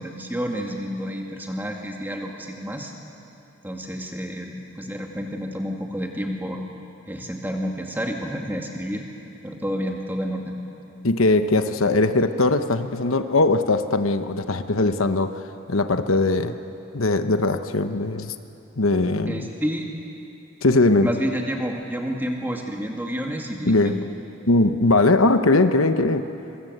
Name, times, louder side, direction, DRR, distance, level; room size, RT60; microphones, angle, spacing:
voice 1, 0.0-2.9 3.6-6.6 7.1-9.1 9.4-10.5 19.3-19.9 21.0-24.1, equal, 10° right, 1 dB, 2.2 m, -29 dB
voice 2, 11.0-16.5 16.9-18.3 18.8-19.5 20.6-21.1 23.6-24.0 24.5-26.2, left 2 dB, 80° left, 8 dB, 1.1 m, -20 dB
24.5 x 24.5 x 8.1 m, 2.8 s
head